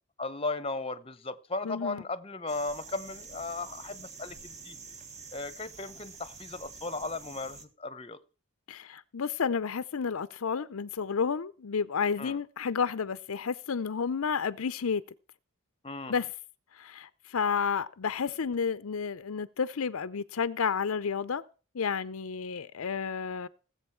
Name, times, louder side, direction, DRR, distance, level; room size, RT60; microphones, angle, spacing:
voice 1, 0.2-4.8 5.3-8.2 12.2-12.4 15.8-16.2, left 3 dB, 25° left, 0.9 m, -36 dB
voice 2, 1.6-2.0 8.7-15.0 16.1-16.3 16.8-21.4 21.7-23.5, left 6 dB, 75° left, 0.6 m, -31 dB
sound 1, 2.5-7.6, right 4 dB, 35° right, 1.5 m, -47 dB
19.0 x 7.9 x 4.5 m
head